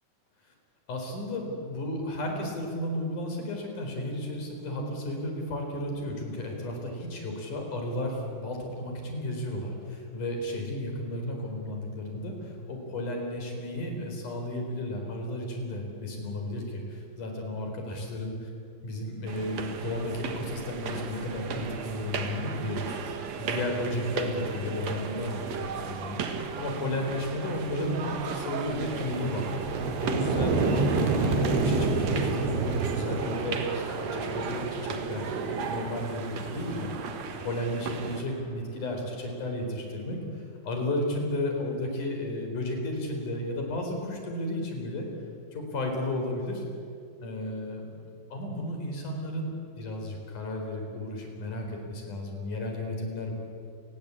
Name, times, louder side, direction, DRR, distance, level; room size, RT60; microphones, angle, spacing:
voice 1, 0.9-18.5 18.8-36.9 37.4-45.1 45.5-46.6 47.2-53.3, left 1 dB, 45° left, 2 dB, 5.6 m, -33 dB
sound 1, 19.3-38.2, right 5 dB, 60° right, 1.9 m, -37 dB
sound 2, 27.7-38.4, right 3 dB, 75° right, 4.8 m, -30 dB
30.0 x 20.0 x 8.4 m, 2.4 s
omnidirectional pair, 5.3 m